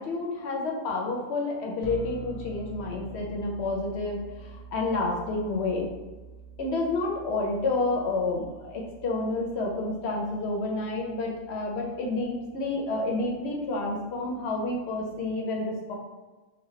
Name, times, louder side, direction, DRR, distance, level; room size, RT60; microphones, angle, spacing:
voice 1, 0.0-5.9 6.6-16.0, left 2 dB, 60° left, -1 dB, 0.8 m, -29 dB
sound 1, 1.8-15.3, right 3 dB, 85° left, 1.1 m, -47 dB
4.1 x 2.2 x 3.1 m, 1.2 s
omnidirectional pair, 1.4 m